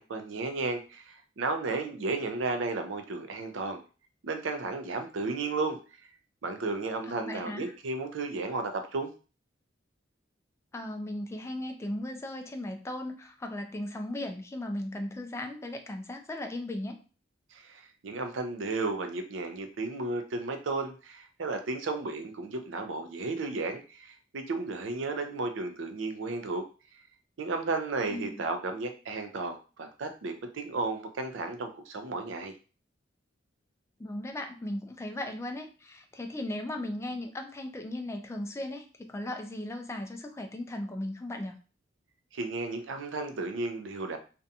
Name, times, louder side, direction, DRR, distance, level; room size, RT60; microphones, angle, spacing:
voice 1, 0.0-3.8 4.2-5.8 6.4-9.1 17.5-26.7 26.9-27.0 27.4-32.5 42.3-44.2, right 3 dB, 90° right, 6 dB, 0.5 m, -33 dB
voice 2, 7.1-7.7 10.7-17.0 28.1-28.4 34.0-41.6, left 1 dB, 15° left, 5 dB, 0.3 m, -37 dB
2.5 x 2.2 x 2.7 m, 0.36 s
head